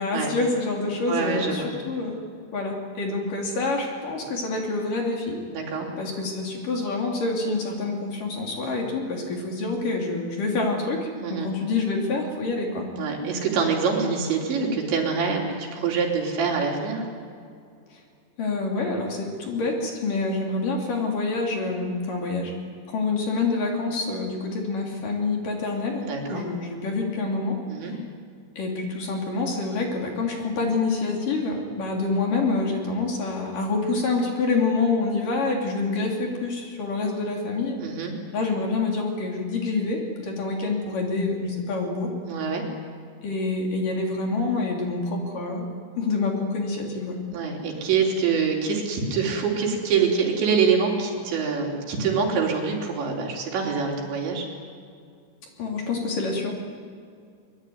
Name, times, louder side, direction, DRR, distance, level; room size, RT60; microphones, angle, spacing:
voice 1, 0.0-2.2 2.5-5.4 6.0-12.9 18.4-22.5 22.9-27.6 27.8-28.0 28.6-37.8 38.3-42.1 43.2-45.7 46.0-47.2 55.6-56.5, left 3 dB, 50° left, 0 dB, 4.5 m, -27 dB
voice 2, 1.1-1.7 5.5-5.9 11.2-11.5 13.0-17.0 26.0-26.5 27.7-27.9 37.8-38.1 42.3-42.6 47.3-54.5, right 5 dB, 75° right, 0 dB, 5.6 m, -25 dB
24.0 x 21.5 x 9.5 m, 2.3 s
omnidirectional pair, 5.3 m